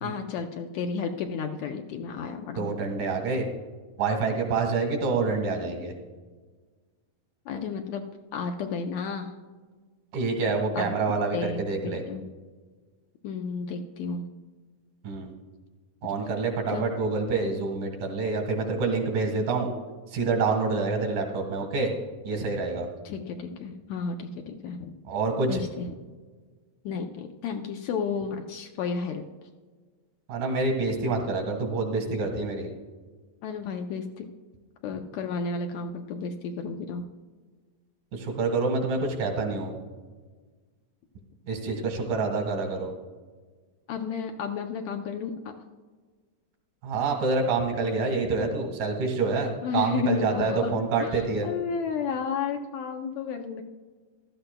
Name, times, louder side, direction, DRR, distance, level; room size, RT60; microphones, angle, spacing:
voice 1, 0.0-2.7 7.5-8.1 8.3-9.3 10.8-10.9 11.3-12.2 13.2-14.2 16.7-16.9 23.0-24.9 25.5-25.9 26.9-29.2 33.4-34.3 34.8-37.0 43.9-45.4 49.6-53.6, left 5 dB, 75° left, 4 dB, 1.8 m, -32 dB
voice 2, 2.6-3.5 4.0-5.9 10.1-12.0 15.0-15.3 16.0-19.7 20.1-21.9 22.3-22.9 25.1-25.6 30.3-32.7 38.1-39.7 41.5-42.9 46.8-51.5, right 4 dB, 80° right, 3 dB, 3.4 m, -27 dB
15.5 x 12.5 x 2.2 m, 1.4 s
omnidirectional pair, 3.7 m